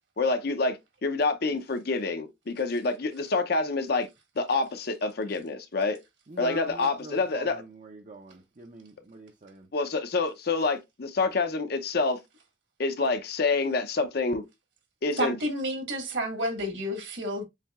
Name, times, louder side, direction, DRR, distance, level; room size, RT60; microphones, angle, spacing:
voice 1, 0.2-4.1 4.4-6.0 6.4-7.5 9.7-12.2 12.8-14.4 15.0-15.4, left 3 dB, 50° left, 0.6 m, -27 dB
voice 2, 6.3-9.7, right 2 dB, 40° right, 0.5 m, -44 dB
voice 3, 15.2-17.5, equal, 65° right, 1.7 m, -30 dB
7.2 x 2.8 x 2.3 m
head